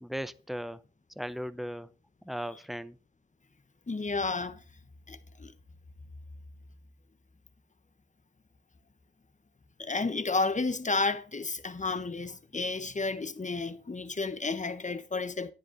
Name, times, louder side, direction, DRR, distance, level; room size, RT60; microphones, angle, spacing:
voice 1, 0.0-0.8 1.2-1.9 2.2-3.0, equal, ahead, 0.7 m, -37 dB
voice 2, 3.9-4.6 5.1-5.5 9.8-15.5, left 3 dB, 35° left, 1.2 m, -31 dB
10.5 x 9.5 x 4.0 m
cardioid pair, 55°, 21 cm